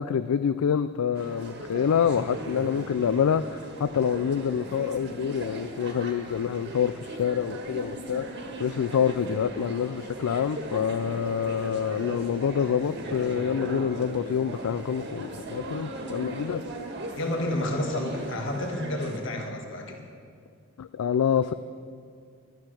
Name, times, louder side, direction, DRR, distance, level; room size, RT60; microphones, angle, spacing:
voice 1, 0.0-8.3 8.6-16.7 20.8-21.5, left 7 dB, 85° left, 12 dB, 0.4 m, -27 dB
sound 1, 1.1-19.2, right 1 dB, 50° right, 1.6 m, -38 dB
voice 2, 17.1-20.0, left 1 dB, 55° left, 1 dB, 1.6 m, -30 dB
12.0 x 11.5 x 6.3 m, 2.2 s
head